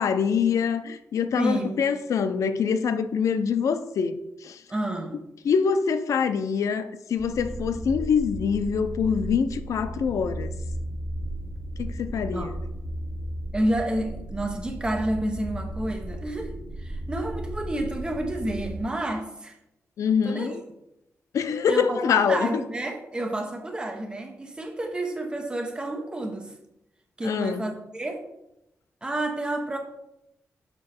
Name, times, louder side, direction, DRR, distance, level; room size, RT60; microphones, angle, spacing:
voice 1, 0.0-4.6 5.4-10.5 11.8-12.5 20.0-20.6 21.3-22.5 27.2-27.6, left 6 dB, 80° left, 0.5 m, -25 dB
voice 2, 1.4-1.9 4.7-5.2 12.2-12.5 13.5-19.6 20.2-20.6 21.7-22.0 22.3-26.5 27.2-28.2 29.0-29.8, right 1 dB, 15° right, 0.9 m, -30 dB
sound 1, 7.2-18.8, right 1 dB, ahead, 2.6 m, -35 dB
6.7 x 4.7 x 4.3 m
wide cardioid pair, 160°, 5 cm